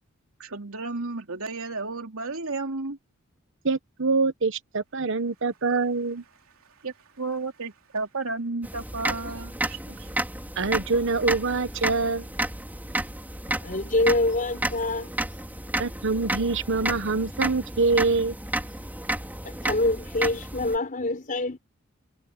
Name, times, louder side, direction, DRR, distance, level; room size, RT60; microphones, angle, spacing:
voice 1, 0.4-3.0 6.8-10.1, right 3 dB, 80° right, 3.0 m, -33 dB
voice 2, 3.6-6.2 10.6-12.3 15.8-18.3, right 3 dB, 60° right, 1.1 m, -25 dB
sound 1, 8.6-20.8, right 1 dB, 10° right, 4.6 m, -32 dB
voice 3, 13.5-15.1 19.4-21.6, left 2 dB, 40° left, 5.2 m, -26 dB
head